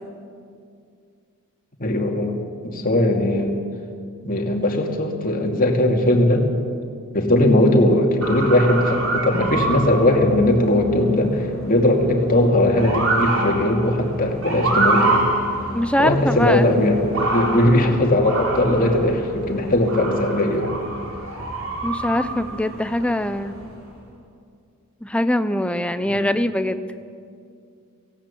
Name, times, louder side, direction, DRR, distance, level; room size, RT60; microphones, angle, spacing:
voice 1, 1.8-2.4 2.6-3.6 4.2-6.5 7.1-15.2 16.0-20.7 26.1-26.3, left 1 dB, 40° left, 1 dB, 2.5 m, -19 dB
Motor vehicle (road) / Siren, 8.2-23.8, right 2 dB, 65° right, 4.0 m, -27 dB
voice 2, 15.7-16.7 21.8-23.6 25.0-26.8, left 1 dB, 5° left, 10 dB, 0.7 m, -22 dB
18.5 x 16.5 x 8.6 m, 2.3 s
head